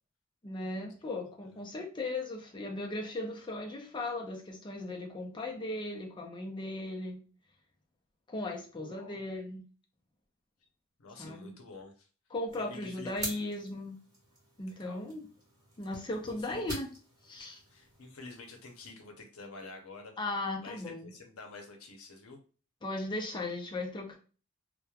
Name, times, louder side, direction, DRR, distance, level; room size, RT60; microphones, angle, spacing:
voice 1, 0.4-7.2 8.3-9.6 11.2-11.5 12.3-14.0 14.6-15.3 15.8-16.9 17.2-17.6 20.2-21.1 22.8-24.2, left 2 dB, 20° left, 0 dB, 0.5 m, -37 dB
voice 2, 1.3-1.6 8.7-9.2 11.0-12.1 12.6-13.2 14.7-15.0 16.4-16.7 17.7-20.1 20.6-22.4, left 3 dB, 80° left, 3 dB, 0.7 m, -49 dB
sound 1, 12.5-18.9, right 1 dB, 15° right, 1.4 m, -46 dB
2.9 x 2.1 x 2.3 m, 0.37 s
head